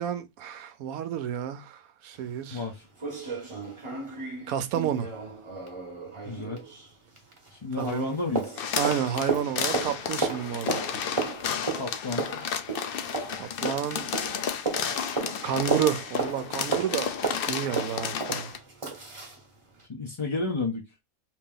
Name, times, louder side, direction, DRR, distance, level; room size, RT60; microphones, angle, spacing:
voice 1, 0.0-2.6 4.5-5.1 7.8-8.1 8.8-10.8 13.4-14.3 14.8-17.1 17.5-18.5, right 9 dB, 75° right, 1.0 m, -31 dB
sound 1, 2.1-2.2 2.6-2.7 3.0-7.5 7.8-19.4 19.8-19.9, right 4 dB, 25° right, 0.9 m, -34 dB
voice 2, 2.5-2.9 6.2-6.6 7.5-8.7 11.7-12.3 19.9-20.8, left 3 dB, 35° left, 0.5 m, -31 dB
sound 2, 8.6-18.6, left 7 dB, 80° left, 0.5 m, -32 dB
2.9 x 2.8 x 3.6 m
omnidirectional pair, 1.6 m